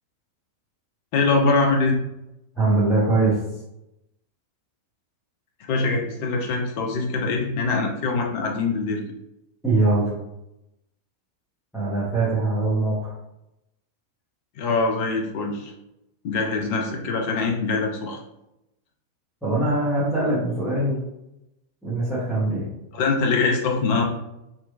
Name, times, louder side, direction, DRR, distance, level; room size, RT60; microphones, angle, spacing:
voice 1, 1.1-2.0 5.7-9.0 14.6-15.7 16.2-18.2 22.9-24.0, left 3 dB, 45° left, 1 dB, 0.5 m, -23 dB
voice 2, 2.6-3.4 9.6-10.1 11.7-13.1 19.4-21.0 21.8-22.7, right 2 dB, ahead, -11 dB, 1.0 m, -22 dB
2.9 x 2.2 x 2.3 m, 0.88 s
figure-of-eight pair, 90°, 0 cm